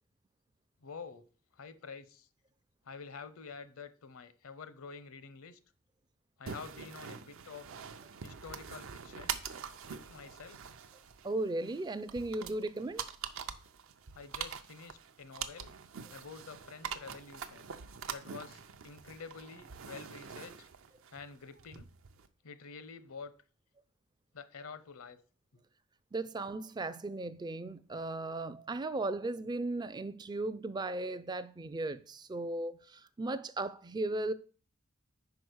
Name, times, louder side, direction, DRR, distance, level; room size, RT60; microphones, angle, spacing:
voice 1, 0.8-1.2 1.5-2.3 2.8-5.6 6.4-7.7 8.2-9.4 9.9-10.6 14.1-15.7 16.1-17.7 18.1-20.7 21.1-21.9 22.4-23.3 24.3-25.2 25.5-25.6, left 5 dB, 70° left, 0.7 m, -48 dB
sound 1, 6.5-22.3, right 7 dB, 65° right, 0.6 m, -44 dB
voice 2, 11.2-13.0 26.1-34.3, right 2 dB, 20° right, 0.3 m, -36 dB
5.2 x 4.8 x 6.2 m
head